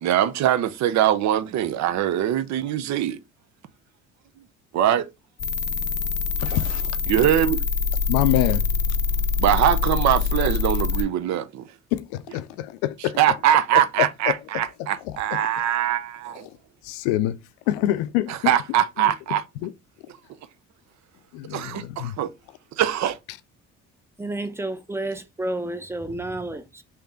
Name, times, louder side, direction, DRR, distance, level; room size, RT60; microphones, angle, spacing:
voice 1, 0.0-3.2 4.7-5.1 6.5-6.6 7.1-7.6 9.4-11.7 13.0-16.5 18.3-19.4 21.5-22.3 22.8-23.2, right 11 dB, 60° right, 0.6 m, -22 dB
sound 1, 5.4-11.0, left 5 dB, 35° left, 0.6 m, -24 dB
voice 2, 6.4-6.9 8.1-8.7 11.9-13.2 16.8-17.4 17.7-18.5 19.6-19.7 21.3-22.1, left 14 dB, 85° left, 0.5 m, -25 dB
voice 3, 24.2-26.8, right 2 dB, 10° right, 0.7 m, -30 dB
3.5 x 2.9 x 3.6 m
supercardioid pair, 75°, 31 cm